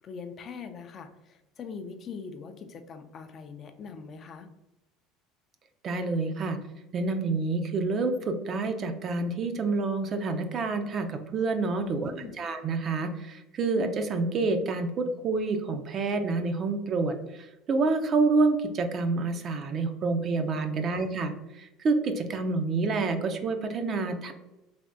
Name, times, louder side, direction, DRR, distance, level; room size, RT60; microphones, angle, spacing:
voice 1, 0.0-4.5 11.8-12.4, left 5 dB, 40° left, 8 dB, 0.4 m, -42 dB
voice 2, 5.8-6.6 6.9-24.3, right 3 dB, 40° right, 7 dB, 0.4 m, -28 dB
3.3 x 2.8 x 2.6 m, 0.97 s
supercardioid pair, 105°, 0 cm